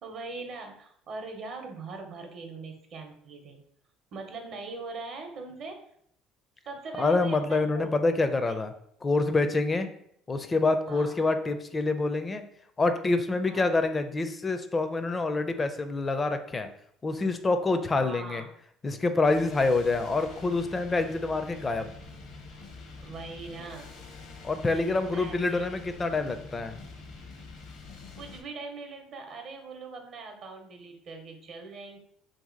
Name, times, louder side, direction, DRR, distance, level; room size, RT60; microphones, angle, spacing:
voice 1, 0.0-3.6 4.1-5.8 6.7-7.9 8.5-8.6 9.7-9.9 10.9-11.2 13.4-13.7 18.0-18.5 19.8-20.0 23.0-23.9 24.7-26.0 28.1-32.0, right 3 dB, 60° right, 4 dB, 0.7 m, -41 dB
voice 2, 7.0-8.7 9.0-9.9 10.3-12.4 12.8-16.7 17.0-18.4 18.8-21.9 24.4-26.8, left 3 dB, 25° left, 9 dB, 0.4 m, -26 dB
sound 1, 19.2-28.4, left 3 dB, 70° left, 0.8 m, -46 dB
2.8 x 2.7 x 3.8 m, 0.69 s
supercardioid pair, 85°, 0 cm